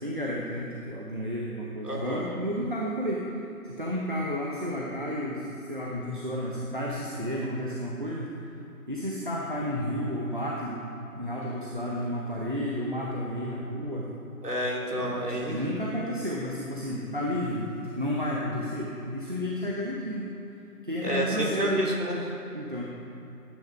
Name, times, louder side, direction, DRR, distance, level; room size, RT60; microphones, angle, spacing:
voice 1, 0.0-3.3 3.6-8.5 8.9-10.8 11.1-14.1 15.0-20.3 20.8-21.8 22.5-22.8, equal, 35° right, -4 dB, 1.1 m, -32 dB
voice 2, 1.8-2.3 14.4-15.6 21.0-22.4, equal, 90° right, -3 dB, 3.7 m, -29 dB
16.0 x 9.7 x 4.9 m, 2.8 s
figure-of-eight pair, 175°, 46 cm